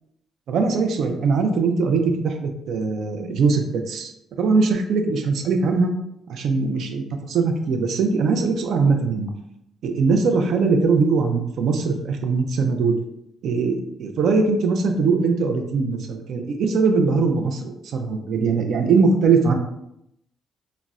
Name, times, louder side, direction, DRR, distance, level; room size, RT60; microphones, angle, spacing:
voice 1, 0.5-4.1 4.4-5.9 6.3-9.3 9.8-12.9 13.4-19.5, right 4 dB, 70° right, 5 dB, 0.4 m, -21 dB
3.9 x 2.1 x 2.3 m, 0.80 s
cardioid pair, 90°, 0 cm